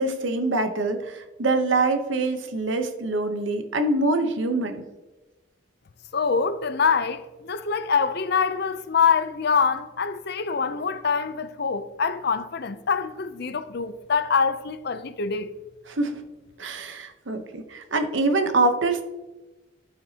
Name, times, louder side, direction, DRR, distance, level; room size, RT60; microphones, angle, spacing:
voice 1, 0.0-4.8 15.9-16.2 16.6-19.0, right 2 dB, 65° right, 0.9 m, -25 dB
voice 2, 6.1-15.5, left 5 dB, 55° left, 0.5 m, -25 dB
13.5 x 5.8 x 2.9 m
head